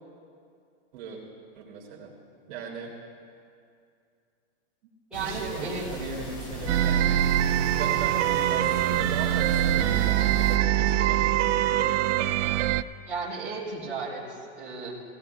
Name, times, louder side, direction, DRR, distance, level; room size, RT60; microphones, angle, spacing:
voice 1, 1.5-2.1 2.5-2.9 5.2-7.1 7.7-11.5, right 4 dB, 45° right, -4 dB, 2.9 m, -38 dB
sound 1, 5.1-10.6, left 1 dB, 15° left, 0.4 m, -38 dB
voice 2, 5.1-5.9 13.1-14.9, right 4 dB, 5° right, -11 dB, 3.9 m, -34 dB
sound 2, 6.7-12.8, right 12 dB, 85° right, 0.5 m, -23 dB
18.5 x 17.5 x 2.3 m, 2.3 s
supercardioid pair, 170°, 35 cm